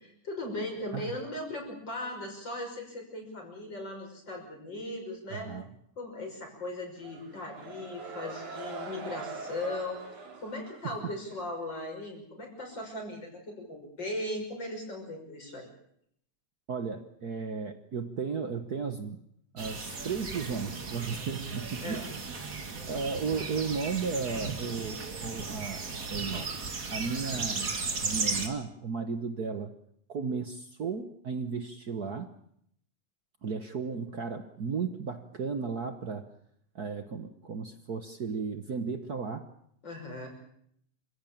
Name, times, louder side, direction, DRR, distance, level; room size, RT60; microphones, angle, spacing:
voice 1, 0.0-5.5 6.0-10.0 10.4-15.7 21.8-22.1 39.8-40.3, left 1 dB, 35° left, 2 dB, 6.4 m, -38 dB
voice 2, 5.3-5.7 10.8-11.0 16.7-19.2 19.5-22.3 22.9-25.8 26.1-26.5 26.9-27.7 28.0-29.7 30.1-32.3 33.4-36.3 36.7-39.5, right 5 dB, 60° right, 9 dB, 1.0 m, -34 dB
sound 1, 7.0-11.5, right 4 dB, 85° right, 4.6 m, -43 dB
sound 2, 19.6-28.5, right 4 dB, 30° right, 2.1 m, -36 dB
27.5 x 16.0 x 8.7 m, 0.72 s
omnidirectional pair, 3.4 m